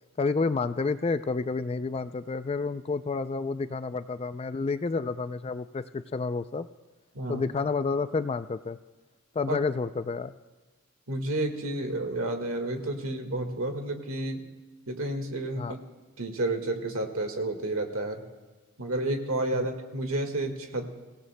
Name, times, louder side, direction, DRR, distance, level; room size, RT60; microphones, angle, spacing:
voice 1, 0.2-6.7 7.3-8.8 9.4-10.3 15.6-15.7 19.5-19.7, left 4 dB, 25° left, 12 dB, 0.3 m, -30 dB
voice 2, 7.1-7.5 9.5-9.6 11.1-14.4 14.9-15.8 16.2-18.2 18.8-20.9, right 2 dB, 70° right, 5 dB, 1.7 m, -31 dB
25.0 x 16.5 x 2.2 m, 1.4 s
head